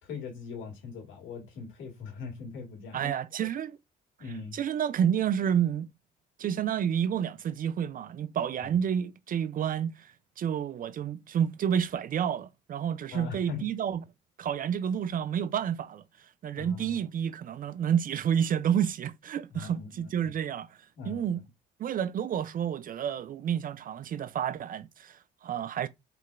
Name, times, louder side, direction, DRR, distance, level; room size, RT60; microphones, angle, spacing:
voice 1, 0.0-3.1 3.4-3.5 4.2-4.6 8.6-8.8 13.1-13.6 16.5-17.0 19.5-20.1 21.0-21.3, left 5 dB, 70° left, 2.0 m, -41 dB
voice 2, 2.9-3.8 4.5-5.9 6.4-14.0 14.4-16.0 16.4-20.7 21.1-21.4 21.8-25.9, right 8 dB, 45° right, 0.4 m, -30 dB
3.7 x 3.2 x 2.3 m
supercardioid pair, 60°, 21 cm